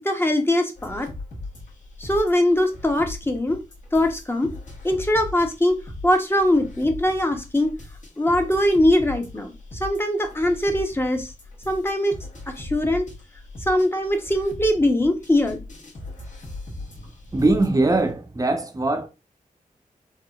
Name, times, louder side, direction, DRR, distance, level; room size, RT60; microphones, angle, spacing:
voice 1, 0.0-1.1 2.0-3.6 3.9-4.5 4.8-7.7 8.2-9.5 9.8-11.3 11.7-12.2 12.5-13.1 13.7-15.6, left 1 dB, 15° left, 0.8 m, -21 dB
sound 1, 0.8-18.1, left 2 dB, 55° left, 1.2 m, -39 dB
voice 2, 17.0-19.1, right 2 dB, 25° right, 0.7 m, -22 dB
3.7 x 2.8 x 2.3 m
cardioid pair, 65°, 15 cm